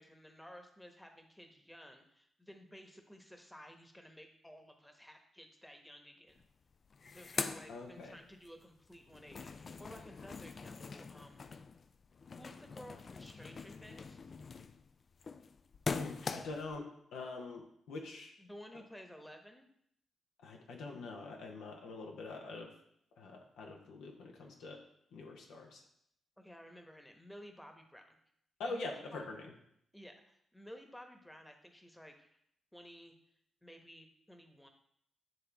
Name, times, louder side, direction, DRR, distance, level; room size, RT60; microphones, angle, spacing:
voice 1, 0.0-6.4 7.1-11.5 12.4-14.2 18.4-19.7 26.4-28.2 28.7-29.2 29.9-32.4 32.7-33.1 33.6-34.7, equal, 10° left, 4 dB, 1.1 m, -54 dB
sound 1, 6.4-6.5 6.7-8.5 8.9-16.8, left 4 dB, 50° left, 0.4 m, -43 dB
voice 2, 7.7-8.2 15.9-16.9 17.1-18.3 20.4-22.7 23.2-24.8 25.1-25.8 28.6-29.4, left 3 dB, 80° left, 1 dB, 0.9 m, -44 dB
9.0 x 3.3 x 3.5 m, 0.71 s
hypercardioid pair, 45°, 0 cm